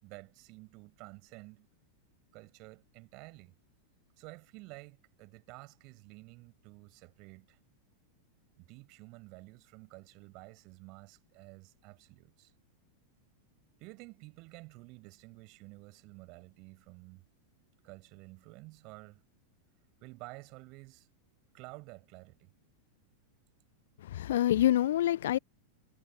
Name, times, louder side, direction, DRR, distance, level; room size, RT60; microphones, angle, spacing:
voice 1, 0.0-1.7 2.3-3.5 4.2-7.6 8.6-12.5 13.8-17.2 17.8-19.2 20.0-21.1 21.5-22.5, right 26 dB, 40° right, 6.5 m, -51 dB
voice 2, 24.0-25.4, left 12 dB, 60° left, 0.7 m, -26 dB
figure-of-eight pair, 90°, 0 cm